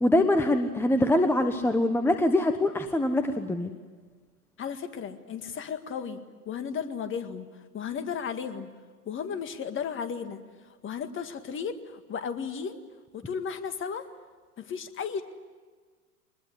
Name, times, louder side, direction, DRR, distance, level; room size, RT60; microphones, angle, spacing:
voice 1, 0.0-3.7, left 1 dB, 5° left, 8 dB, 1.1 m, -24 dB
voice 2, 4.6-6.2 6.5-8.7 9.1-10.4 10.8-12.8 13.1-14.1 14.6-15.2, left 7 dB, 25° left, 9 dB, 1.9 m, -34 dB
24.5 x 21.0 x 9.9 m, 1.5 s
hypercardioid pair, 100°, 47 cm